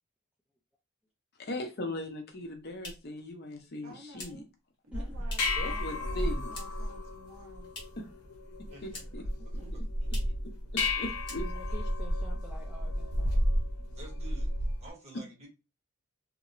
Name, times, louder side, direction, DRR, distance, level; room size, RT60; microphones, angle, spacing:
voice 1, 1.4-4.4 5.6-6.5 8.8-9.2 10.9-11.4, left 1 dB, 45° left, 4 dB, 0.5 m, -39 dB
sound 1, 2.2-5.7 6.0-7.0 7.2-8.1 8.4-9.3 9.6-9.7 10.0-10.4 10.8-10.9 11.2-11.8, left 2 dB, 20° left, 0.8 m, -48 dB
voice 2, 3.8-4.5 4.9-5.4 5.7-7.7 9.4-9.7, right 1 dB, 65° right, 1 dB, 0.9 m, -52 dB
sound 2, 4.9-14.9, left 1 dB, 85° left, 0.7 m, -32 dB
voice 3, 8.7-9.0 9.7-10.1 13.9-14.5 14.8-15.5, right 2 dB, 30° right, -1 dB, 0.8 m, -50 dB
voice 4, 11.4-13.4, equal, 5° right, -3 dB, 0.3 m, -48 dB
2.8 x 2.0 x 2.4 m, 0.27 s
head